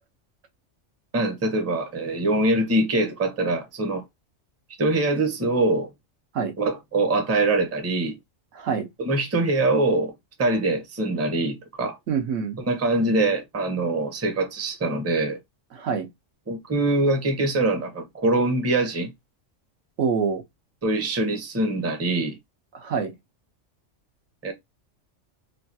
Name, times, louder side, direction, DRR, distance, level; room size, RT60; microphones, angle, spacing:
voice 1, 1.1-4.0 4.8-5.9 6.6-8.1 9.0-10.1 10.4-12.0 12.7-15.4 16.5-19.1 20.8-22.4 24.4-24.5, right 2 dB, 20° right, 0.5 m, -23 dB
voice 2, 8.5-8.9 12.1-12.6 15.7-16.1 20.0-20.4 22.7-23.1, right 6 dB, 90° right, 1.1 m, -26 dB
3.1 x 2.3 x 2.6 m
omnidirectional pair, 1.3 m